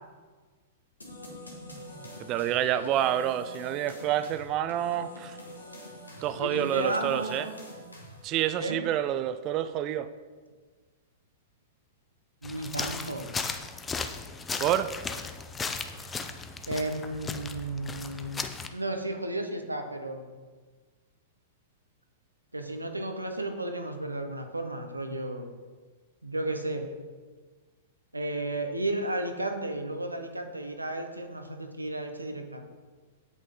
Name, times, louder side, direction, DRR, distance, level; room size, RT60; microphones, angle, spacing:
sound 1, 1.0-8.4, equal, 90° left, 2.1 m, -45 dB
voice 1, 2.2-5.4 6.2-7.5 8.2-10.1 14.6-14.9, right 11 dB, 35° right, 13 dB, 0.4 m, -28 dB
voice 2, 6.4-7.5 8.6-8.8 12.4-13.3 16.7-20.3 22.5-25.5 26.2-26.9 28.1-32.6, right 1 dB, 90° right, 5 dB, 0.9 m, -33 dB
sound 2, 12.4-18.7, left 4 dB, 15° left, 0.6 m, -36 dB
8.4 x 8.2 x 3.7 m, 1.4 s
figure-of-eight pair, 105°, 0 cm